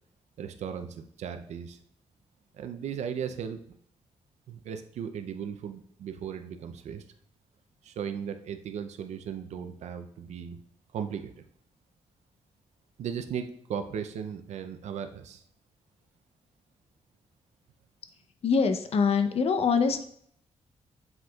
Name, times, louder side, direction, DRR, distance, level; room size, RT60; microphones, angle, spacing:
voice 1, 0.4-1.8 2.5-3.6 4.5-7.0 7.8-10.6 10.9-11.4 13.0-15.4, right 7 dB, 80° right, 7 dB, 0.5 m, -36 dB
voice 2, 18.4-20.1, left 5 dB, 60° left, 7 dB, 0.7 m, -24 dB
7.7 x 5.9 x 2.3 m, 0.64 s
cardioid pair, 125°, 12 cm